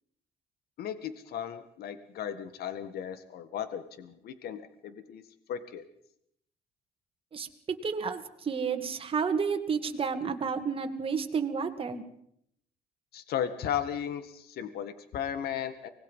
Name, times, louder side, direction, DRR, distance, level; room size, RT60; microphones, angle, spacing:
voice 1, 0.8-5.2 5.5-5.8 13.1-15.9, left 9 dB, 65° left, 11 dB, 1.8 m, -35 dB
voice 2, 7.8-12.0, right 5 dB, 35° right, 6 dB, 2.3 m, -31 dB
25.0 x 19.5 x 5.6 m, 0.71 s
cardioid pair, 110°, 17 cm